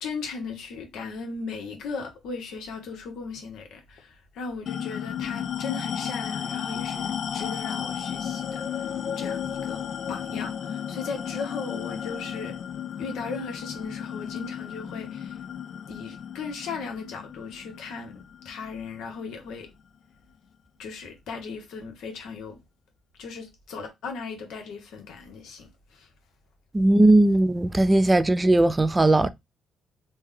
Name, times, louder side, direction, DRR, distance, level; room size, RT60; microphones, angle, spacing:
voice 1, 0.0-8.9 9.2-12.6 13.0-15.4 15.9-19.7 20.8-22.6 23.2-26.1, left 4 dB, 80° left, 0.9 m, -37 dB
sound 1, 4.7-19.5, left 8 dB, 60° left, 0.3 m, -33 dB
voice 2, 26.7-29.3, right 2 dB, 15° right, 0.3 m, -18 dB
3.2 x 2.1 x 3.5 m
cardioid pair, 90°, 0 cm